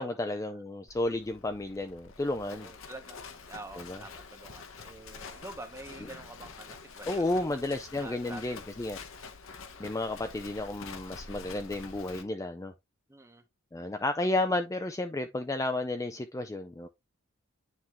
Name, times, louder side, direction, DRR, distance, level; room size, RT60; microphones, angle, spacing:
voice 1, 0.0-2.7 3.8-4.0 7.1-9.0 9.8-12.7 13.7-16.9, left 2 dB, 15° left, 0.4 m, -32 dB
Livestock farm animals working animals, 0.9-12.2, left 4 dB, 65° left, 0.9 m, -47 dB
voice 2, 2.4-8.6 13.1-13.5, right 2 dB, 15° right, 0.9 m, -47 dB
9.7 x 3.5 x 2.9 m
head